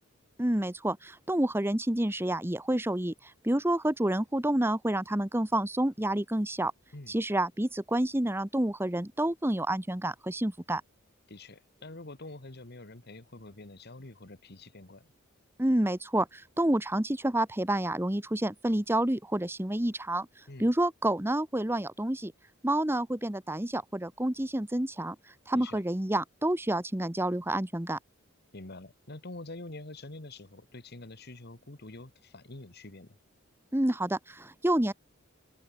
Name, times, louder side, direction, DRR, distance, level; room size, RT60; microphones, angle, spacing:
voice 1, 0.4-6.7 7.1-10.8 15.6-20.3 20.6-22.3 22.6-25.2 25.5-28.0 33.7-34.9, right 1 dB, 10° right, 1.1 m, -29 dB
voice 2, 11.3-15.1 20.5-20.7 25.5-25.8 28.5-33.2, left 2 dB, 50° left, 2.0 m, -46 dB
head